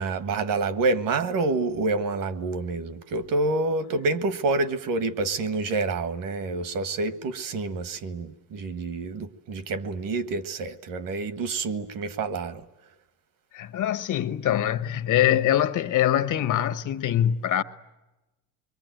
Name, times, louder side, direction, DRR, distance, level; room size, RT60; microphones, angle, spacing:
voice 1, 0.0-12.6, right 3 dB, 55° right, 1.6 m, -28 dB
voice 2, 13.5-17.6, left 11 dB, 50° left, 1.2 m, -23 dB
28.0 x 23.0 x 9.2 m
cardioid pair, 140°, 38 cm